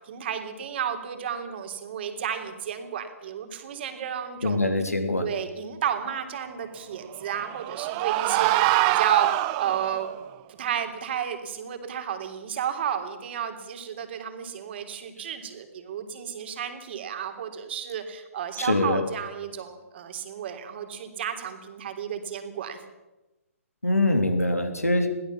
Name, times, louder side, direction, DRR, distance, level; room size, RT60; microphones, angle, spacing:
voice 1, 0.1-4.6 5.2-10.1 10.6-22.8, right 8 dB, 45° right, 6 dB, 3.4 m, -32 dB
voice 2, 4.4-5.3 18.6-19.0 23.8-25.1, left 2 dB, 90° left, 6 dB, 3.0 m, -23 dB
sound 1, 7.1-10.1, right 18 dB, 30° right, 0.8 m, -24 dB
22.0 x 16.5 x 7.3 m, 1.1 s
figure-of-eight pair, 130°, 8 cm